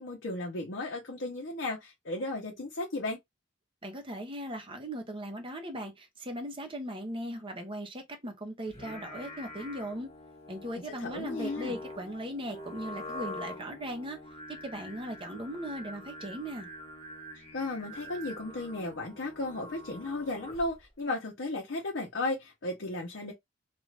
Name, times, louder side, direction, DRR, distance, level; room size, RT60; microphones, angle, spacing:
voice 1, 0.0-3.2 10.9-11.8 17.5-23.3, left 2 dB, 65° left, 0.8 m, -35 dB
voice 2, 3.8-10.1 10.5-14.2 14.5-16.7, equal, 25° right, 0.8 m, -38 dB
Singing, 8.7-20.8, left 1 dB, 30° left, 1.3 m, -45 dB
2.5 x 2.5 x 3.2 m
head